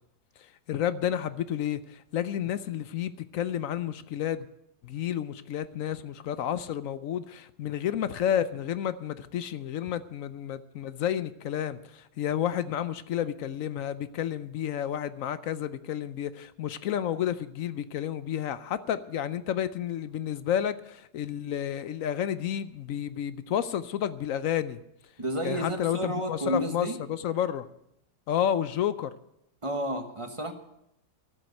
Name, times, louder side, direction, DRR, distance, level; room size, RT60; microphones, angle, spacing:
voice 1, 0.4-4.5 4.8-24.8 25.4-27.7 28.3-29.1, left 10 dB, 65° left, 14 dB, 0.8 m, -31 dB
voice 2, 25.2-27.0 29.6-30.5, right 1 dB, 20° right, 5 dB, 1.1 m, -31 dB
13.5 x 7.9 x 9.2 m, 0.81 s
omnidirectional pair, 1.9 m